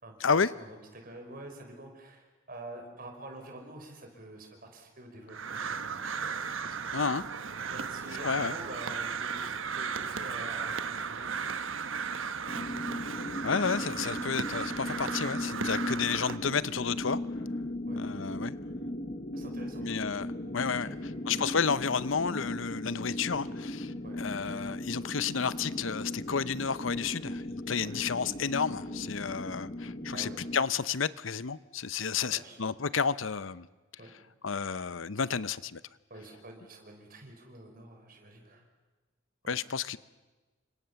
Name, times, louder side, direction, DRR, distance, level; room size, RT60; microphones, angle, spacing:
voice 1, 0.5-6.9 7.7-11.5 12.5-12.7 17.9-18.1 19.3-19.9 20.2-20.3 20.7-21.5 24.0-24.2 27.8-28.0 30.1-30.5 32.1-32.6 34.0-34.2 36.1-38.6 39.4-39.6, right 1 dB, 50° right, 3 dB, 5.7 m, -48 dB
Crow, 5.3-16.4, right 6 dB, 90° right, 1.2 m, -36 dB
voice 2, 6.9-7.2 8.2-8.6 13.4-17.2 17.9-18.5 19.8-20.3 20.5-20.9 21.3-33.7 34.4-35.8 39.5-40.0, left 6 dB, 80° left, 16 dB, 0.8 m, -31 dB
sound 1, 12.5-30.6, left 1 dB, 40° left, 1.6 m, -37 dB
30.0 x 25.5 x 7.1 m, 1.2 s
head